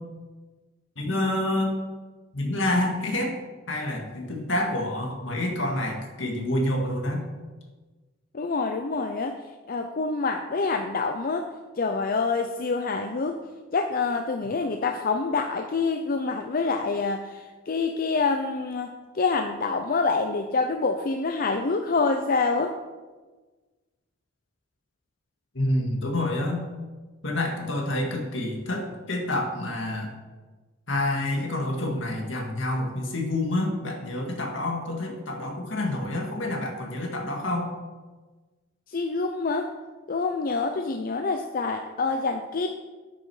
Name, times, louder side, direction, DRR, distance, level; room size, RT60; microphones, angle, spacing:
voice 1, 1.0-1.8 2.3-3.4 3.7-7.3 25.5-26.7 27.2-30.1 30.9-37.7, left 1 dB, 70° left, 1 dB, 2.0 m, -28 dB
voice 2, 8.3-9.4 9.7-11.5 11.8-13.4 13.7-22.7 38.9-39.7 40.1-42.7, left 4 dB, 50° left, 5 dB, 0.6 m, -26 dB
9.3 x 6.5 x 6.3 m, 1.3 s
head